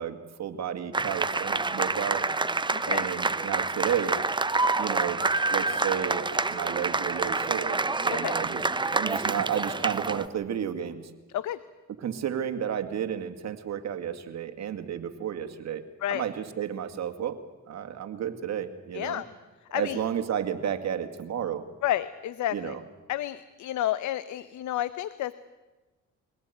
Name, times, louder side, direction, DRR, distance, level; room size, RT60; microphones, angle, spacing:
voice 1, 0.0-2.2 2.8-4.2 4.8-5.2 5.5-7.8 8.0-11.1 12.0-15.8 16.1-17.4 17.7-19.2 19.7-21.6 22.5-22.8, right 9 dB, 60° right, 7 dB, 2.2 m, -32 dB
sound 1, 0.9-10.3, right 3 dB, 15° right, 0.9 m, -27 dB
voice 2, 2.7-3.1 8.1-8.3 11.3-11.6 16.0-16.2 18.9-19.2 19.7-20.0 21.8-22.7 23.1-25.3, left 13 dB, 75° left, 15 dB, 0.8 m, -30 dB
23.5 x 18.0 x 9.3 m, 1.2 s
cardioid pair, 90°, 30 cm